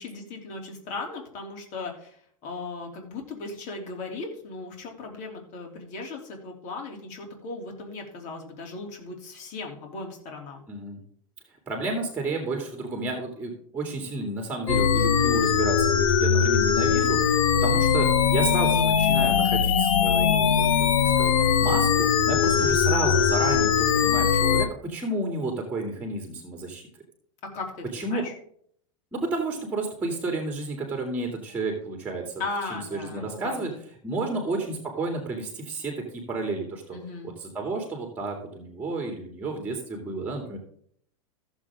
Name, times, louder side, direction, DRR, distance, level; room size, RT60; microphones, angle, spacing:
voice 1, 0.0-2.2 2.4-10.7 22.4-22.7 27.5-28.3 32.4-33.8 34.1-34.3 36.9-37.3, left 3 dB, 45° left, 2 dB, 3.1 m, -37 dB
voice 2, 10.7-11.0 11.7-17.4 17.6-26.8 27.9-28.2 29.1-32.3 32.7-33.7 34.0-37.0 37.2-40.6, right 2 dB, 10° right, 2 dB, 2.6 m, -31 dB
sound 1, 14.7-24.7, left 7 dB, 90° left, 0.8 m, -21 dB
15.0 x 7.3 x 3.7 m, 0.62 s
supercardioid pair, 125°, 17 cm